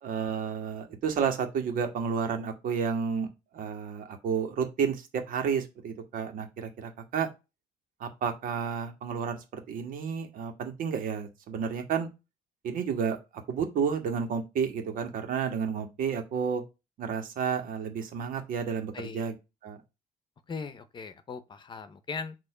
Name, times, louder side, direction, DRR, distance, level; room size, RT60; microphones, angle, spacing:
voice 1, 0.0-3.3 3.5-7.3 8.0-12.1 12.6-13.2 13.5-16.6 17.0-19.3 19.6-19.8, right 6 dB, 75° right, 1.7 m, -31 dB
voice 2, 18.9-19.3 20.5-22.4, left 5 dB, 35° left, 0.8 m, -39 dB
6.9 x 3.1 x 5.0 m
cardioid pair, 160°, 14 cm